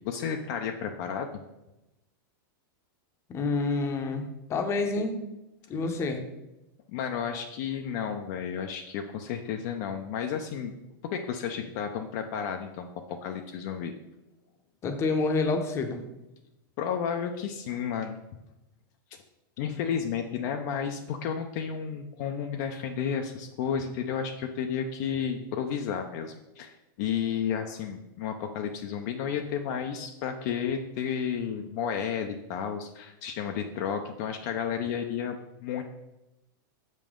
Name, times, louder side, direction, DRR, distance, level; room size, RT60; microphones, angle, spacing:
voice 1, 0.0-1.3 6.9-10.7 11.1-13.9 16.8-18.2 19.6-35.8, left 7 dB, 50° left, 4 dB, 0.6 m, -32 dB
voice 2, 3.3-5.2 5.7-6.2 14.8-16.0 19.6-19.7, left 3 dB, 25° left, 5 dB, 0.8 m, -28 dB
6.6 x 5.2 x 3.7 m, 0.95 s
supercardioid pair, 140°, 11 cm